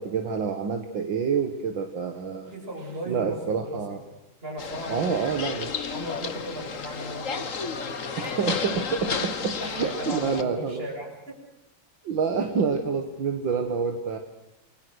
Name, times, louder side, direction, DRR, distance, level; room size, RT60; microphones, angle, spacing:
voice 1, 0.0-2.5 3.1-4.0 4.9-5.7 8.2-10.8 12.0-14.2, right 6 dB, 70° right, 6 dB, 2.3 m, -27 dB
voice 2, 2.5-4.0 4.4-5.4 5.9-8.4 8.9-9.1 9.6-11.4, equal, 25° right, 0 dB, 7.4 m, -37 dB
sound 1, 4.6-10.4, left 5 dB, 45° left, 1.7 m, -32 dB
29.0 x 22.0 x 6.4 m, 0.87 s
omnidirectional pair, 2.2 m